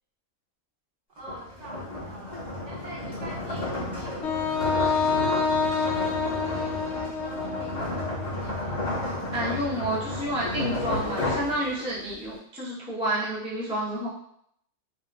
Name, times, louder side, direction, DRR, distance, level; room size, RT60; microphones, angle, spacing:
voice 1, 1.1-8.9, right 1 dB, 60° right, -4 dB, 0.9 m, -45 dB
sound 1, 1.2-12.1, left 2 dB, 25° left, 1.0 m, -32 dB
Wind instrument woodwind instrument, 4.2-8.3, left 5 dB, 65° left, 0.7 m, -27 dB
voice 2, 9.3-14.1, right 1 dB, 5° right, -8 dB, 0.4 m, -30 dB
4.1 x 2.2 x 2.3 m, 0.70 s
omnidirectional pair, 1.6 m